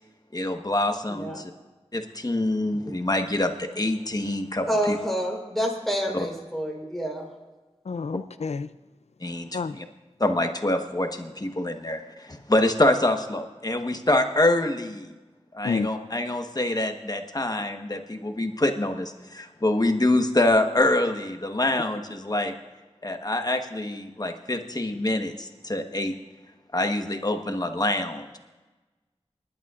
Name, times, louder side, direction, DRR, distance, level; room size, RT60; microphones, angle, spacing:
voice 1, 0.3-1.5 1.9-5.0 6.1-6.2 9.2-9.8 10.2-15.1 15.5-22.5 23.0-26.1 26.7-28.4, left 1 dB, 35° left, 5 dB, 1.2 m, -25 dB
voice 2, 1.1-1.4 4.7-7.3, equal, ahead, -1 dB, 3.9 m, -28 dB
voice 3, 7.9-8.7 9.5-9.7 15.6-15.9, left 5 dB, 75° left, 15 dB, 0.4 m, -29 dB
29.5 x 11.5 x 2.5 m, 1.2 s
wide cardioid pair, 55°, 11 cm